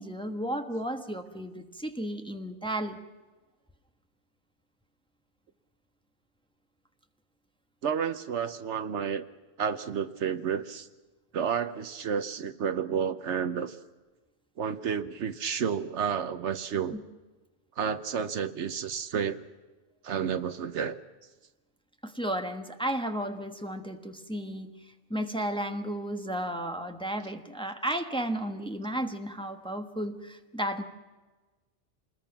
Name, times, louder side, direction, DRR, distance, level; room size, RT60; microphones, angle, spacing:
voice 1, 0.0-3.0 16.9-17.0 22.0-30.8, right 1 dB, 5° left, 5 dB, 1.2 m, -33 dB
voice 2, 7.8-9.2 9.6-10.9 11.3-13.8 14.6-17.0 17.8-19.4 20.0-20.9, right 7 dB, 75° right, 10 dB, 1.2 m, -31 dB
27.0 x 20.5 x 5.9 m, 1.2 s
omnidirectional pair, 1.2 m